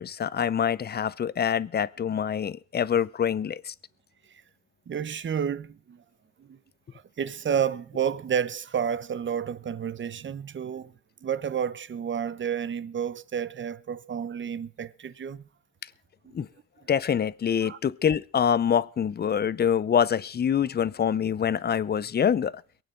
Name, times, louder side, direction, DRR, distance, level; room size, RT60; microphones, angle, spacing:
voice 1, 0.0-3.7 16.3-16.5 16.9-22.5, left 8 dB, 35° left, 0.6 m, -25 dB
voice 2, 4.9-6.0 6.4-6.6 6.9-10.9 11.2-15.5 16.2-16.3 17.6-17.8, right 8 dB, 40° right, 0.8 m, -30 dB
22.5 x 9.1 x 4.6 m
cardioid pair, 90°, 30 cm